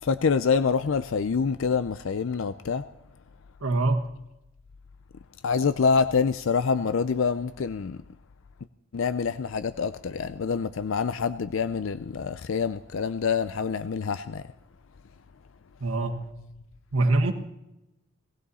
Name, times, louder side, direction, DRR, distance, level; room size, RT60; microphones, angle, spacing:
voice 1, 0.0-2.8 5.4-8.0 8.9-14.4, left 5 dB, 65° left, 0.4 m, -26 dB
voice 2, 3.6-4.0 15.8-16.1 16.9-17.3, right 2 dB, 80° right, 1.4 m, -23 dB
19.0 x 15.0 x 4.2 m
head